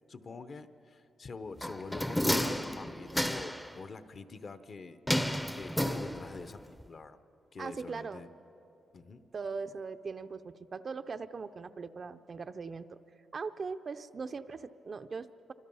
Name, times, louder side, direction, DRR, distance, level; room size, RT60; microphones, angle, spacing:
voice 1, 0.1-5.0 5.5-7.2 7.5-8.3 8.9-9.3, left 4 dB, 40° left, 11 dB, 0.8 m, -46 dB
sound 1, 1.6-3.7 5.1-6.5 6.8-6.9, left 1 dB, 5° left, 0.6 m, -31 dB
voice 2, 7.6-8.2 9.3-13.0 13.3-15.5, right 4 dB, 35° right, 10 dB, 0.5 m, -40 dB
27.0 x 25.5 x 5.5 m, 3.0 s
wide cardioid pair, 155°, 0 cm